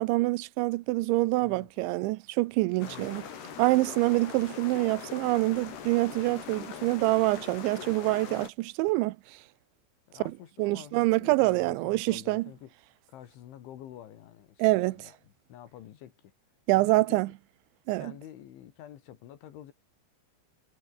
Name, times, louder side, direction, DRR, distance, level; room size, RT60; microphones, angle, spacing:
voice 1, 0.0-3.2 3.6-9.2 10.6-12.5 14.6-15.0 16.7-17.3 17.9-18.1, right 21 dB, 80° right, 3.0 m, -26 dB
voice 2, 2.8-3.1 10.1-12.7 13.1-16.3 16.7-17.2 18.0-19.7, left 11 dB, 75° left, 4.4 m, -48 dB
sound 1, 2.8-8.5, left 8 dB, 60° left, 5.3 m, -42 dB
omnidirectional pair, 5.5 m